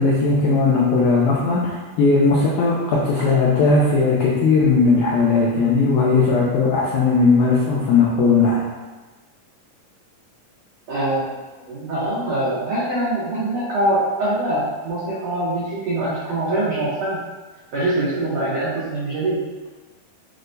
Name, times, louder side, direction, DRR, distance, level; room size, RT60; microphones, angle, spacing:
voice 1, 0.0-8.7, left 4 dB, 85° left, -5 dB, 1.7 m, -17 dB
voice 2, 10.9-11.3 11.7-17.2 17.7-19.4, right 1 dB, 90° right, -9 dB, 1.4 m, -23 dB
6.1 x 2.1 x 2.6 m, 1.3 s
omnidirectional pair, 4.0 m